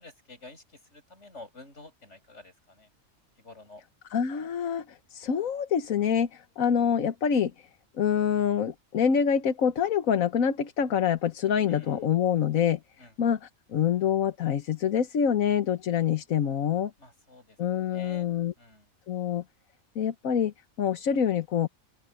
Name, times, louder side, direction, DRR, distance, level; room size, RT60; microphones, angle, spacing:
voice 1, 0.0-2.9 3.4-3.8 11.7-12.0 13.0-13.1 17.0-17.6 17.9-18.3 18.6-18.9, left 2 dB, 55° left, 8.4 m, -50 dB
voice 2, 4.1-7.5 8.0-12.8 13.2-16.9 17.6-18.5 19.1-19.4 19.9-21.7, left 8 dB, 75° left, 1.5 m, -26 dB
open air
omnidirectional pair, 1.4 m